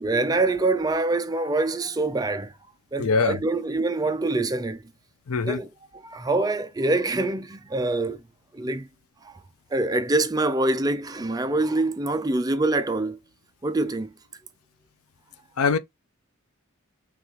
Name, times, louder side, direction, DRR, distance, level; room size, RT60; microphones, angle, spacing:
voice 1, 0.0-2.5 2.9-4.8 5.4-5.7 6.0-8.2 8.5-8.9 9.2-9.4 9.7-13.2 13.6-14.1, right 2 dB, 20° right, 0.5 m, -25 dB
voice 2, 3.0-3.4 5.3-5.6 15.6-15.8, left 4 dB, 90° left, 0.5 m, -22 dB
5.9 x 2.5 x 3.0 m
head